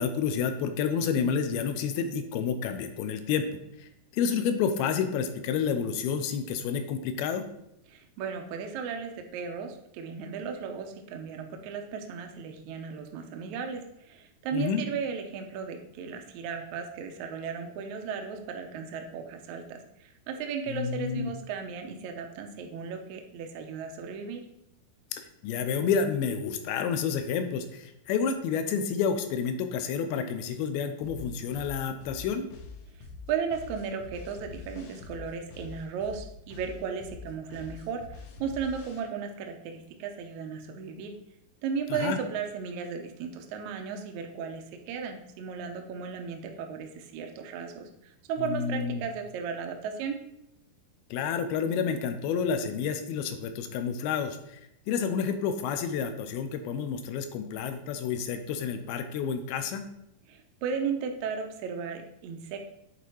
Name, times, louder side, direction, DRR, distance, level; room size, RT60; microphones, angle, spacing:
voice 1, 0.0-3.5 4.1-7.5 14.5-14.8 20.7-21.3 25.1-32.5 41.9-42.2 48.4-49.1 51.1-54.6 54.9-59.9, left 6 dB, 85° left, 8 dB, 2.6 m, -29 dB
voice 2, 7.9-24.4 33.3-41.1 41.6-50.2 60.3-62.6, right 6 dB, 85° right, 4 dB, 1.6 m, -35 dB
sound 1, 31.0-39.0, left 4 dB, 70° left, 1.9 m, -45 dB
8.1 x 4.2 x 4.6 m, 0.80 s
omnidirectional pair, 4.4 m